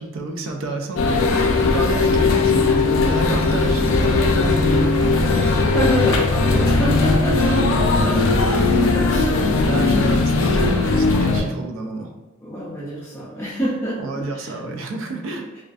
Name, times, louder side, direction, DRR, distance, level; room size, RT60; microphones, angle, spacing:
voice 1, 0.0-5.6 7.4-8.9 9.6-12.1 14.0-15.5, right 2 dB, 85° right, 3 dB, 0.4 m, -30 dB
sound 1, 1.0-11.4, left 3 dB, 85° left, 0.3 m, -18 dB
voice 2, 5.2-8.2 8.9-9.8 12.4-14.6, equal, 10° left, -10 dB, 0.4 m, -27 dB
2.4 x 2.3 x 2.3 m, 1.1 s
head